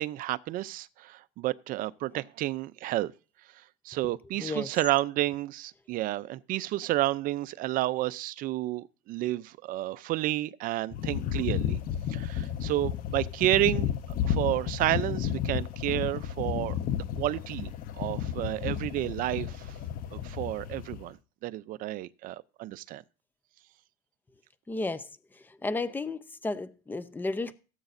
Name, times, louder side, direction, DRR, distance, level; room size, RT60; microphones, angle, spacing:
voice 1, 0.0-3.1 3.8-11.8 12.1-13.9 14.2-17.7 18.0-19.7 20.1-21.2 21.4-23.0, right 15 dB, 50° right, 0.5 m, -31 dB
sound 1, 10.9-21.1, left 9 dB, 50° left, 0.9 m, -32 dB
voice 2, 24.7-25.1 25.5-27.5, left 3 dB, 10° left, 0.7 m, -33 dB
17.0 x 8.1 x 2.6 m
supercardioid pair, 130°, 19 cm